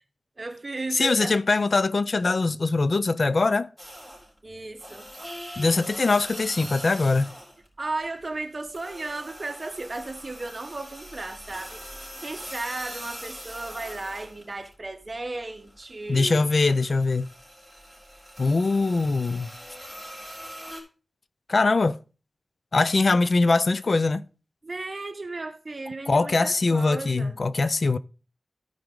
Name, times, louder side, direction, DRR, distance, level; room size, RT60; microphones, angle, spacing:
voice 1, 0.4-1.4 4.4-5.1 7.8-16.5 24.6-27.3, right 2 dB, 45° right, 1.1 m, -35 dB
voice 2, 0.9-3.7 5.6-7.3 16.1-17.3 18.4-19.5 21.5-22.0 22.7-24.2 26.1-28.0, left 3 dB, 65° left, 0.4 m, -22 dB
sound 1, 3.8-4.4 4.8-7.7 8.0-14.7 15.1-20.8, equal, 15° left, 4.1 m, -42 dB
13.5 x 5.0 x 3.7 m
wide cardioid pair, 85°, 0 cm